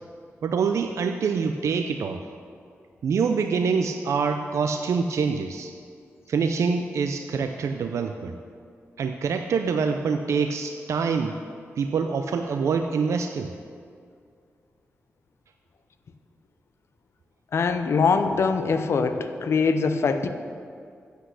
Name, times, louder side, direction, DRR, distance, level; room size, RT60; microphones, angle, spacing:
voice 1, 0.4-2.2 3.0-5.7 6.3-8.4 9.0-11.4 11.8-13.5, right 5 dB, 80° right, 6 dB, 0.4 m, -25 dB
voice 2, 17.5-20.3, left 5 dB, 60° left, 9 dB, 0.6 m, -23 dB
8.1 x 8.0 x 6.3 m, 2.2 s
wide cardioid pair, 120°, 5 cm